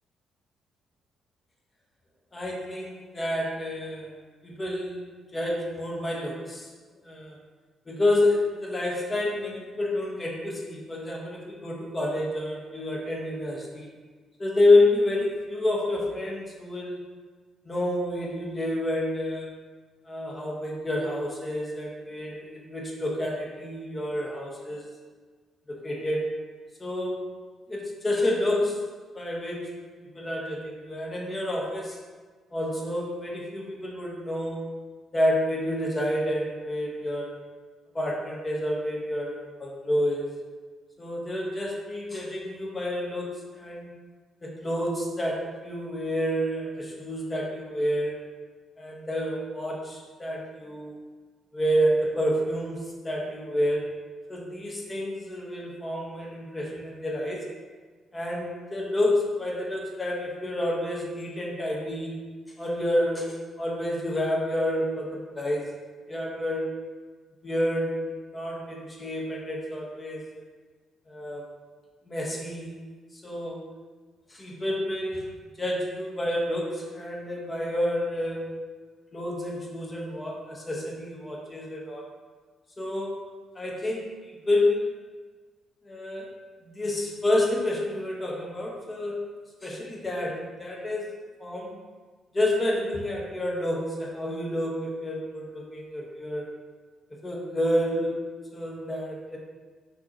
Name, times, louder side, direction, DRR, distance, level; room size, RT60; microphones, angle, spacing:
voice 1, 2.3-4.1 4.4-6.7 7.0-7.4 7.9-13.9 14.4-17.0 17.6-19.5 20.1-24.8 25.7-26.3 26.8-27.3 27.7-28.8 29.1-32.0 32.5-34.7 35.1-37.4 37.9-40.3 41.0-43.9 44.4-48.2 48.8-51.0 51.5-53.9 54.3-57.5 58.1-62.2 62.6-65.7 66.1-66.7 67.4-70.2 71.1-71.5 72.1-72.7 73.1-73.6 74.3-75.3 75.6-78.6 79.1-82.1 82.8-83.2 83.5-84.9 85.8-86.3 86.6-89.2 89.6-91.1 91.4-91.8 92.3-96.5 97.2-98.2 98.5-99.4, left 1 dB, 25° left, -2 dB, 1.2 m, -29 dB
6.0 x 3.0 x 2.9 m, 1.4 s
hypercardioid pair, 45°, 0 cm